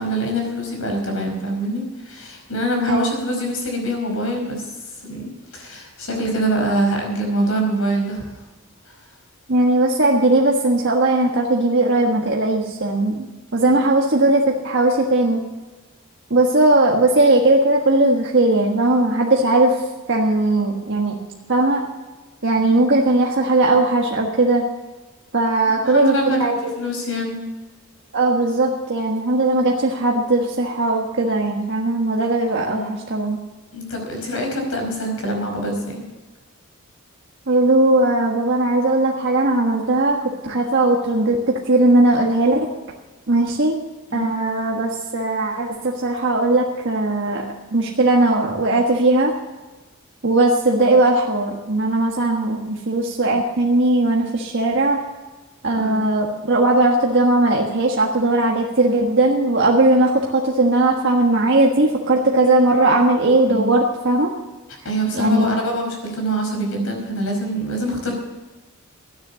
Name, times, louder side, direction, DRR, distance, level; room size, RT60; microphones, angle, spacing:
voice 1, 0.0-4.7 5.0-8.3 22.7-22.8 25.6-26.5 26.8-27.4 32.7-33.1 33.7-36.0 44.1-44.3 55.7-56.0 63.5-63.7 64.8-68.1, right 1 dB, 70° left, 2 dB, 5.0 m, -24 dB
voice 2, 9.5-13.3 13.5-15.4 16.3-19.7 20.1-21.2 21.5-21.9 22.4-24.6 25.3-26.1 26.4-26.7 28.1-33.4 37.5-40.2 40.4-42.7 43.3-43.8 44.1-47.5 47.7-49.3 50.2-55.0 55.6-64.3 65.1-65.5, right 2 dB, 60° right, -1 dB, 1.5 m, -18 dB
13.5 x 9.8 x 6.8 m, 1.2 s
head